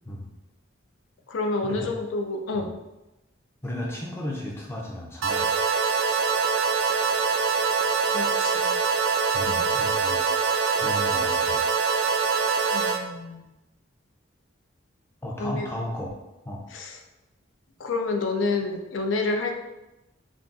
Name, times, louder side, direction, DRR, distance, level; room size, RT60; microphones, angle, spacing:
voice 1, 1.3-2.7 8.1-8.8 9.5-9.6 12.7-13.5 15.4-15.7 16.7-17.0 17.8-19.6, left 3 dB, 75° left, 4 dB, 0.4 m, -29 dB
voice 2, 3.6-5.5 9.3-10.2 10.7-11.6 15.2-16.1 16.4-16.6, left 1 dB, 15° left, -2 dB, 0.5 m, -34 dB
sound 1, 5.2-13.0, right 5 dB, 75° right, 0.4 m, -24 dB
2.4 x 2.3 x 3.7 m, 0.98 s
head